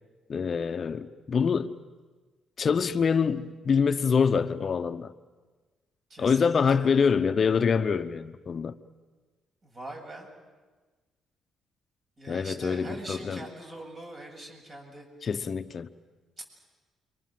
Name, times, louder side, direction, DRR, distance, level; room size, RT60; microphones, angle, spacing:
voice 1, 0.3-1.8 2.6-5.1 6.2-8.8 12.3-13.4 15.2-15.9, left 6 dB, 45° left, 0.9 m, -25 dB
voice 2, 6.1-7.2 9.6-10.3 12.2-15.1, right 1 dB, 40° right, 7.8 m, -43 dB
29.5 x 24.5 x 7.7 m
cardioid pair, 90°, 0 cm